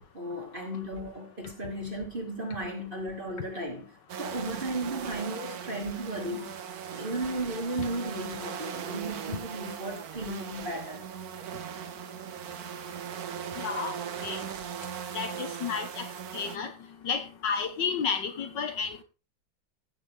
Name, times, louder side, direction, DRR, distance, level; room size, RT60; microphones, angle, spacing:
voice 1, 0.1-6.6 6.9-11.0, right 1 dB, 25° right, 2.7 m, -35 dB
sound 1, 4.1-16.6, right 8 dB, 55° right, 1.4 m, -39 dB
voice 2, 13.6-13.9 14.2-14.5 15.1-16.1 16.3-16.7 17.0-19.0, left 6 dB, 70° left, 1.8 m, -31 dB
16.0 x 7.0 x 3.5 m
omnidirectional pair, 2.1 m